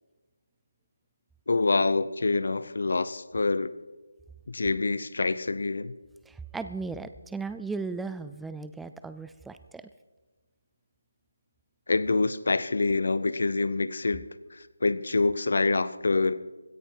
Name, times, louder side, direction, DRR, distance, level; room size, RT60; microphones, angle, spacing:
voice 1, 1.5-3.7 4.5-5.9 11.9-14.2 14.5-16.4, left 3 dB, 65° left, 15 dB, 0.8 m, -26 dB
voice 2, 6.3-9.9, right 4 dB, 5° right, 11 dB, 0.4 m, -36 dB
16.5 x 14.0 x 4.7 m, 1.2 s
figure-of-eight pair, 160°, 0 cm